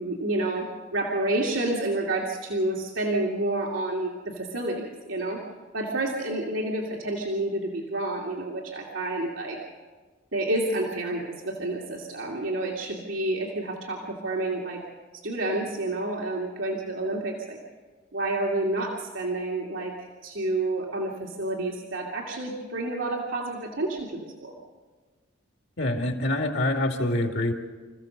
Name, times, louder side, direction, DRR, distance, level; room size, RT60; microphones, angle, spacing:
voice 1, 0.0-5.4 5.7-9.6 10.3-14.8 15.2-17.6 18.1-19.9 20.2-24.5, right 2 dB, 90° right, -2 dB, 2.6 m, -29 dB
voice 2, 25.8-27.5, left 1 dB, 65° left, 3 dB, 2.4 m, -25 dB
27.5 x 15.5 x 6.7 m, 1.4 s
head